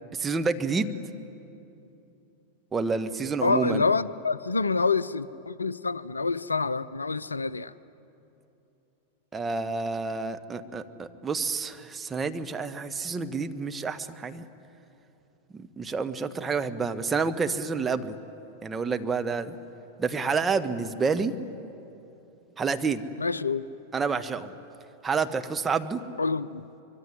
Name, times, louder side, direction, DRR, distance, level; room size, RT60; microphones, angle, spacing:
voice 1, 0.1-0.9 2.7-3.8 9.3-14.5 15.5-18.2 18.6-19.5 20.0-21.3 22.6-23.1 23.9-24.5 25.0-26.0, right 4 dB, 15° right, 1.3 m, -29 dB
voice 2, 3.4-7.7 23.2-23.6 26.2-26.6, left 4 dB, 80° left, 0.5 m, -27 dB
24.5 x 23.0 x 9.7 m
figure-of-eight pair, 90°, 0 cm